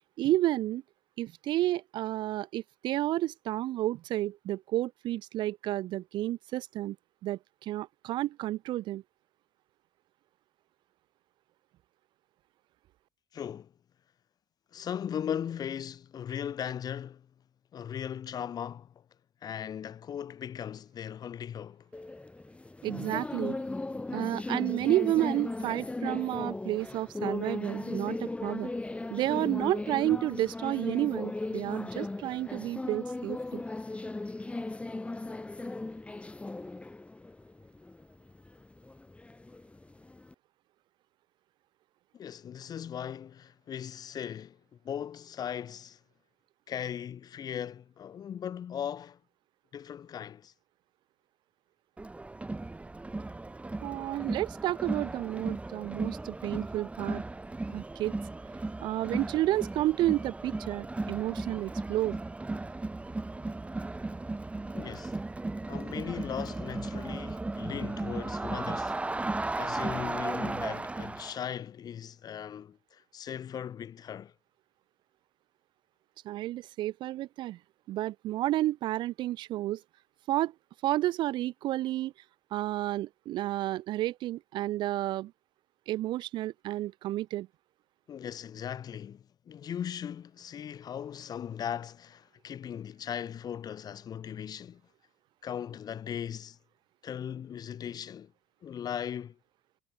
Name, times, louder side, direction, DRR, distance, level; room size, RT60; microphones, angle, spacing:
voice 1, 0.2-0.8 1.2-7.0 7.2-9.0 22.8-23.6 24.1-28.7 29.1-33.6 53.8-57.2 57.7-58.1 58.8-62.2 76.2-77.6 77.9-79.8 80.3-80.5 80.8-82.1 82.5-85.3 85.9-87.5, right 15 dB, 55° right, 0.4 m, -31 dB
voice 2, 13.3-13.7 14.7-17.3 17.7-19.0 19.4-21.9 42.1-44.6 44.8-46.0 46.7-49.2 49.7-50.5 64.7-65.1 65.7-74.3 88.1-94.8 95.4-96.6 97.0-98.3 98.6-99.4, left 9 dB, 45° left, 1.3 m, -38 dB
sound 1, 21.9-40.3, left 2 dB, 15° left, 0.8 m, -37 dB
Crowd, 52.0-71.4, right 2 dB, 15° right, 1.0 m, -36 dB
hypercardioid pair, 60°, 9 cm